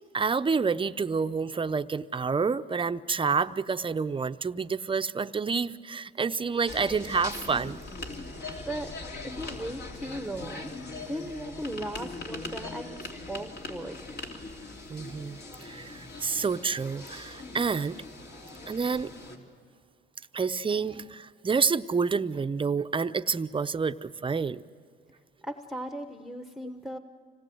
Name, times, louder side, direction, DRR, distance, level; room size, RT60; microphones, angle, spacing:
voice 1, 0.1-7.8 14.9-18.0 18.7-19.1 20.3-24.6, right 5 dB, 25° right, 12 dB, 0.7 m, -28 dB
sound 1, 6.7-19.4, left 2 dB, 55° left, 3.1 m, -41 dB
voice 2, 8.3-8.9 9.2-10.7 11.0-12.9 13.3-14.1 25.4-27.0, right 1 dB, ahead, 7 dB, 1.0 m, -37 dB
26.0 x 19.0 x 7.9 m, 2.2 s
cardioid pair, 90°, 20 cm